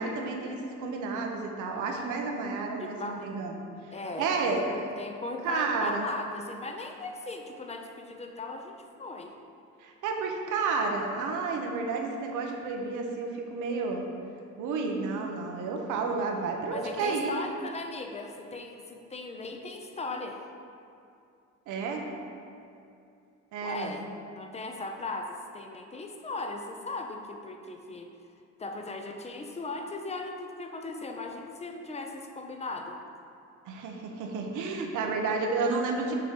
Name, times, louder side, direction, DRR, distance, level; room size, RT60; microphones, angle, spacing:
voice 1, 0.0-3.6 4.1-4.8 5.4-6.1 9.8-14.0 14.6-17.4 21.7-22.1 23.5-24.0 33.7-36.1, right 4 dB, 90° right, 2 dB, 0.8 m, -31 dB
voice 2, 2.8-3.3 3.9-9.3 16.7-20.4 23.6-28.1 28.6-33.0, left 3 dB, 20° left, 4 dB, 0.6 m, -38 dB
6.7 x 3.1 x 5.2 m, 2.6 s
cardioid pair, 90°, 30 cm